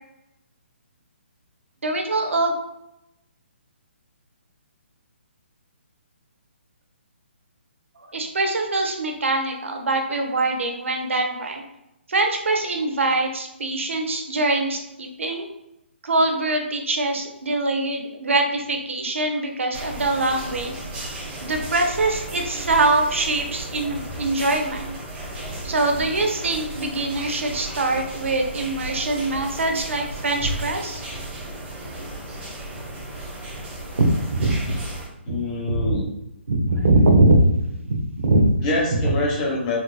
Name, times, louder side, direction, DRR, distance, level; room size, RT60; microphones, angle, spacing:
voice 1, 1.8-2.6 8.1-11.6 12.1-15.5 16.0-20.7 21.4-24.9 25.6-31.0 34.3-34.7 35.7-35.9 36.5-37.4 37.8-38.5 39.0-39.1, right 2 dB, 80° right, 3 dB, 0.7 m, -23 dB
sound 1, 19.7-35.1, right 1 dB, 20° right, 1.0 m, -34 dB
voice 2, 35.2-36.0 38.6-39.8, left 2 dB, 30° left, -2 dB, 1.0 m, -25 dB
4.3 x 2.2 x 2.2 m, 0.86 s
hypercardioid pair, 150°, 7 cm